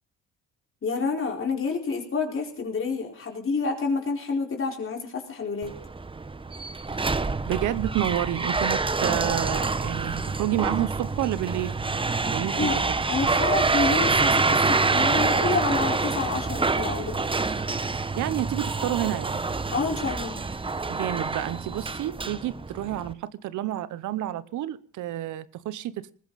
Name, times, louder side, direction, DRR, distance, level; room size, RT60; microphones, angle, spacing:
voice 1, 0.8-5.7 12.6-12.8 13.1-17.1 19.7-20.4, left 4 dB, 45° left, 4.6 m, -28 dB
sound 1, 5.6-23.1, right 3 dB, 15° right, 0.9 m, -26 dB
voice 2, 7.5-11.8 12.3-12.8 18.1-19.4 20.9-26.1, right 13 dB, 80° right, 0.9 m, -29 dB
20.0 x 14.5 x 4.1 m
cardioid pair, 90°, 30 cm